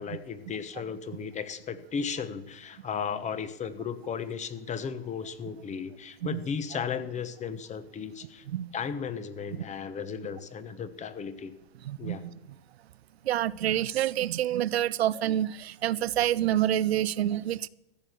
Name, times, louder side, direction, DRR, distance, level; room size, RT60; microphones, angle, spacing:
voice 1, 0.0-8.4 8.7-11.6 12.0-12.2, left 6 dB, 25° left, 13 dB, 1.1 m, -35 dB
voice 2, 11.8-12.3 13.2-17.7, right 12 dB, 90° right, 19 dB, 0.5 m, -27 dB
14.0 x 6.5 x 9.0 m, 0.95 s
hypercardioid pair, 110°, 30 cm